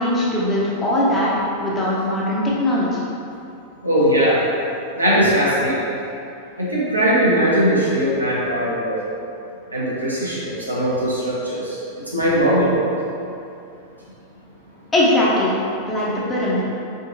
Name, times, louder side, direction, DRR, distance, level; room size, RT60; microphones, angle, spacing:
voice 1, 0.0-1.3 1.6-3.0 14.9-15.5 15.9-16.6, left 1 dB, 15° left, -6 dB, 0.9 m, -20 dB
voice 2, 3.8-4.4 4.9-5.8 6.6-8.9 9.7-11.8 12.1-12.7, equal, 85° right, -8 dB, 0.9 m, -19 dB
3.7 x 3.7 x 2.6 m, 2.7 s
figure-of-eight pair, 90°, 0 cm